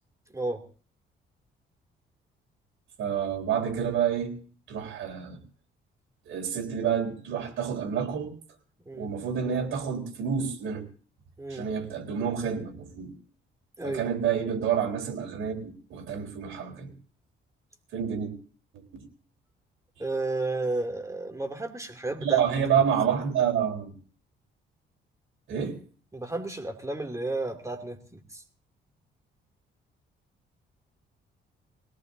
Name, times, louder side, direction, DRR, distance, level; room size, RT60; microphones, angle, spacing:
voice 1, 3.0-4.4 4.7-5.4 6.3-8.3 8.9-10.8 11.5-13.1 13.8-16.9 17.9-18.3 18.9-19.1 22.2-23.9 25.5-25.8, right 8 dB, 85° right, 3 dB, 3.8 m, -28 dB
voice 2, 20.0-22.4 26.1-28.4, right 2 dB, 15° right, 5 dB, 2.7 m, -32 dB
21.5 x 18.0 x 2.7 m, 0.42 s
cardioid pair, 90°, 20 cm